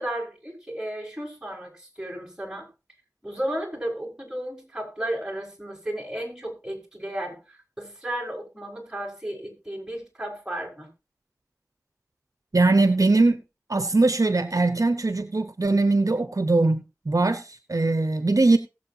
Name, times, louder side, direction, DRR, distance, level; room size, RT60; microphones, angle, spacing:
voice 1, 0.0-2.7 3.2-10.9, right 1 dB, 10° right, 0 dB, 5.1 m, -34 dB
voice 2, 12.5-13.4 13.7-18.6, right 2 dB, 65° right, 10 dB, 0.9 m, -21 dB
20.0 x 7.7 x 2.8 m, 0.29 s
wide cardioid pair, 45°, 6 cm